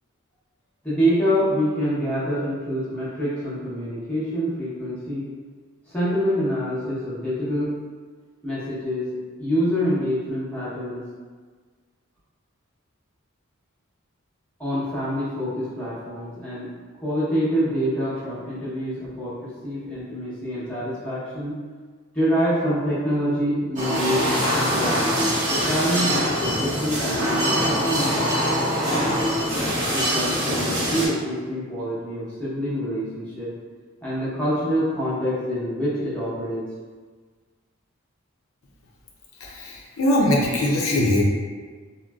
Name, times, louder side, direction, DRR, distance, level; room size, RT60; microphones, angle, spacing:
voice 1, 0.8-5.3 5.9-7.8 8.4-11.0 14.6-21.6 22.1-24.2 24.5-29.5 29.9-33.5 34.0-36.6, equal, 5° left, -11 dB, 0.9 m, -26 dB
sound 1, 23.8-31.1, equal, 35° right, 0.7 m, -23 dB
voice 2, 39.4-41.2, left 1 dB, 85° left, -3 dB, 0.5 m, -21 dB
3.7 x 2.1 x 2.3 m, 1.5 s
head